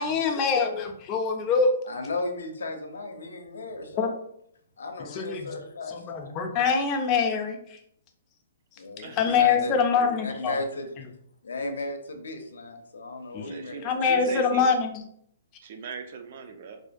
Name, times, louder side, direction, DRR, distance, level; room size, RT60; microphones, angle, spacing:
voice 1, 0.0-1.7 4.0-4.1 5.0-5.5 5.9-7.8 9.1-10.6 13.3-13.5 13.8-15.0, left 5 dB, 30° left, 5 dB, 0.4 m, -24 dB
voice 2, 1.9-4.1 4.8-6.4 8.8-10.9 11.4-14.0, left 2 dB, 85° left, 5 dB, 0.4 m, -35 dB
voice 3, 9.0-9.5 13.4-14.7 15.6-16.8, right 5 dB, 55° right, 7 dB, 0.3 m, -39 dB
2.4 x 2.1 x 2.5 m, 0.71 s
hypercardioid pair, 145°, 0 cm